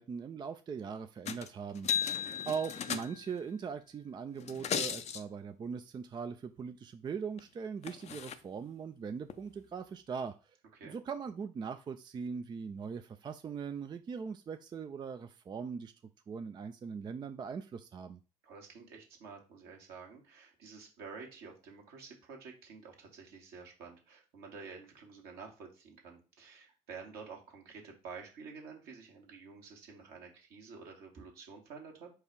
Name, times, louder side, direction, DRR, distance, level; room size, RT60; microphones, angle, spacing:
voice 1, 0.0-2.1 2.5-10.5 10.8-15.9 16.3-18.2, right 6 dB, 25° right, 8 dB, 0.4 m, -40 dB
sound 1, 1.3-1.5 1.8-3.4 4.4-5.2 7.4-7.5 7.8-8.4 9.3-9.4, left 8 dB, 35° left, 0.5 m, -36 dB
voice 2, 18.4-32.1, right 5 dB, 60° right, 1 dB, 1.4 m, -50 dB
4.7 x 2.4 x 4.5 m, 0.33 s
figure-of-eight pair, 50°, 18 cm